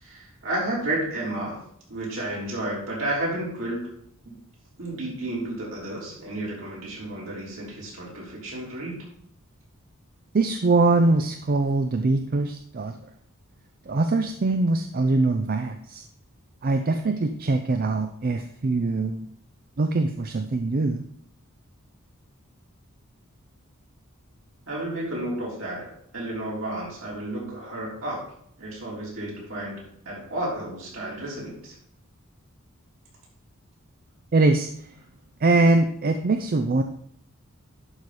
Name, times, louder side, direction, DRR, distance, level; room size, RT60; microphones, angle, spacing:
voice 1, 0.0-1.6 1.9-3.8 4.2-4.4 4.8-9.0 24.7-28.2 28.6-31.7, right 1 dB, 65° right, -5 dB, 3.7 m, -32 dB
voice 2, 10.3-13.1 13.9-16.0 16.6-19.2 19.8-21.0 34.3-34.9 35.4-36.8, right 2 dB, 45° right, 6 dB, 0.5 m, -23 dB
11.0 x 4.9 x 4.1 m, 0.68 s
head